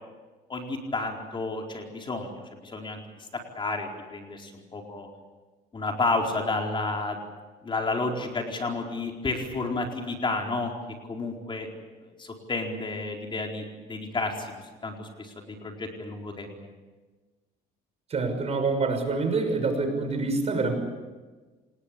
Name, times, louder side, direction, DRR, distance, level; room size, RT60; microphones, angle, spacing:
voice 1, 0.5-5.1 5.7-7.2 7.6-10.7 11.1-11.7 12.0-14.5 14.8-16.7, left 3 dB, 30° left, 2 dB, 4.5 m, -31 dB
voice 2, 18.1-20.7, right 3 dB, 40° right, 6 dB, 6.2 m, -26 dB
27.5 x 19.5 x 8.5 m, 1.3 s
cardioid pair, 110°, 17 cm